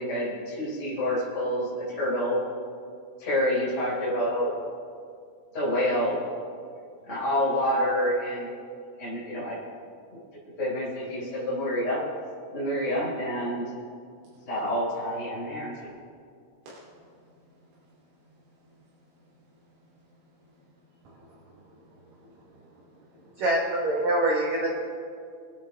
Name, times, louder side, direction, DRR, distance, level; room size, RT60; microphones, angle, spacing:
voice 1, 0.0-2.4 3.2-4.6 5.5-6.2 7.0-8.5 9.0-9.6 10.1-10.2 10.6-12.0 12.5-13.6 14.5-15.7, equal, 15° left, -8 dB, 4.0 m, -27 dB
voice 2, 16.6-23.4, right 1 dB, 65° right, -9 dB, 5.0 m, -58 dB
voice 3, 23.4-24.7, right 1 dB, 90° right, -1 dB, 1.5 m, -24 dB
27.0 x 9.7 x 3.4 m, 2.3 s
omnidirectional pair, 5.3 m